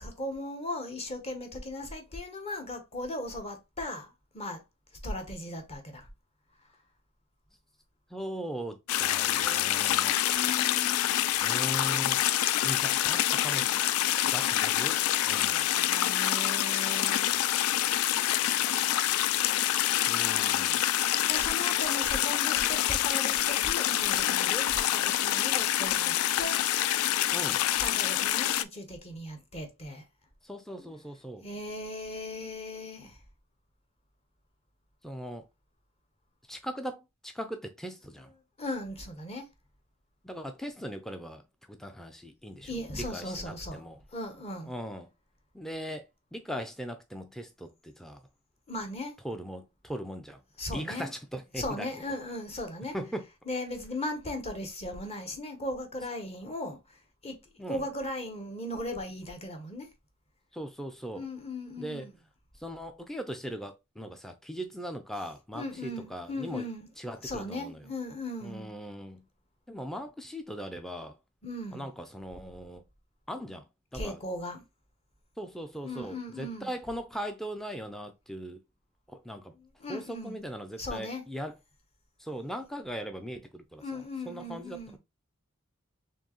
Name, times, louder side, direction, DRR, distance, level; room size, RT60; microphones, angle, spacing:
voice 1, 0.0-4.6 5.0-6.1 9.6-11.2 15.7-17.4 21.3-26.9 27.7-30.0 31.4-33.2 38.6-39.5 42.6-43.8 44.1-44.7 48.7-49.2 50.6-51.1 51.5-52.9 53.5-57.4 57.7-59.9 61.1-62.1 65.5-66.9 67.2-68.7 71.4-71.9 73.9-74.6 75.8-76.7 79.5-80.4 80.8-81.2 83.8-85.0, left 1 dB, 30° left, 0.9 m, -38 dB
voice 2, 8.1-10.2 11.4-12.3 12.6-13.7 14.1-15.7 20.1-20.8 27.3-27.6 30.4-31.4 35.0-35.4 36.5-38.3 40.2-41.4 41.7-44.0 44.6-45.1 45.5-48.2 49.2-50.4 50.7-51.9 52.9-53.2 57.6-57.8 60.5-61.2 61.8-62.1 62.5-66.6 67.0-67.8 68.4-69.2 69.7-71.2 71.7-72.8 73.3-73.6 73.9-74.2 75.4-78.6 79.1-79.5 79.9-81.5 82.2-85.0, equal, ahead, 0.4 m, -39 dB
sound 1, 8.9-28.6, left 13 dB, 85° left, 0.3 m, -27 dB
4.4 x 3.1 x 2.9 m
head